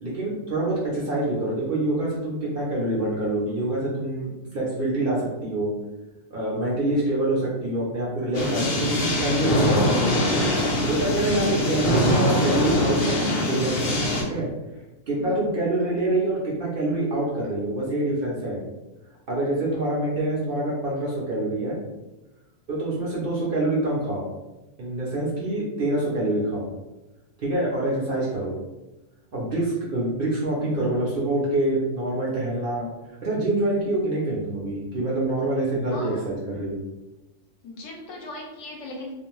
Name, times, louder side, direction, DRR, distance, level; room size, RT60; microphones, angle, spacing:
voice 1, 0.0-5.7 6.3-13.1 13.5-13.9 14.2-14.5 15.1-18.6 19.3-21.8 22.7-24.2 24.8-26.7 27.4-28.5 29.3-32.9 33.2-36.8, right 1 dB, 55° right, -5 dB, 0.7 m, -26 dB
sound 1, 8.3-14.2, left 1 dB, 55° left, 0.6 m, -23 dB
voice 2, 35.9-36.3 37.6-39.1, left 2 dB, 75° left, 0 dB, 1.0 m, -38 dB
2.4 x 2.2 x 3.0 m, 1.0 s
omnidirectional pair, 1.4 m